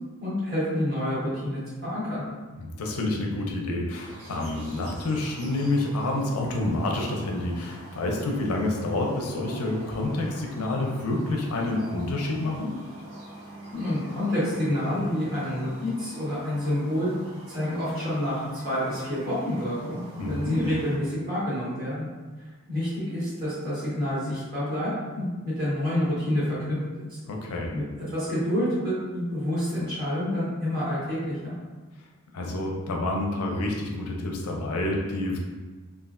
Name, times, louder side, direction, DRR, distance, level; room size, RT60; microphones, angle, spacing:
voice 1, 0.2-2.2 13.7-17.1 17.5-22.1 22.7-27.2 27.7-31.5, left 1 dB, 45° right, -10 dB, 1.2 m, -28 dB
voice 2, 2.6-12.7 20.2-20.7 27.2-27.7 32.3-35.4, left 2 dB, 85° left, 0 dB, 0.5 m, -28 dB
sound 1, 3.9-21.0, right 1 dB, 65° right, 0.8 m, -44 dB
3.1 x 2.3 x 2.5 m, 1.3 s
head